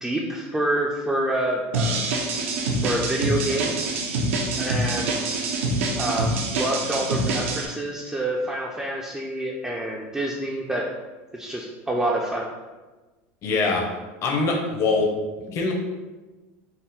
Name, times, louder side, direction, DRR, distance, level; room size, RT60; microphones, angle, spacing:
voice 1, 0.0-2.1 2.8-3.8 4.6-5.4 6.0-10.9 11.3-12.5, right 1 dB, 10° right, -2 dB, 0.4 m, -27 dB
sound 1, 1.7-7.7, right 2 dB, 90° right, 0.7 m, -25 dB
voice 2, 13.4-13.9 14.2-15.1 15.4-15.7, left 3 dB, 45° left, 1 dB, 0.7 m, -23 dB
4.1 x 2.0 x 3.9 m, 1.2 s
supercardioid pair, 130°, 7 cm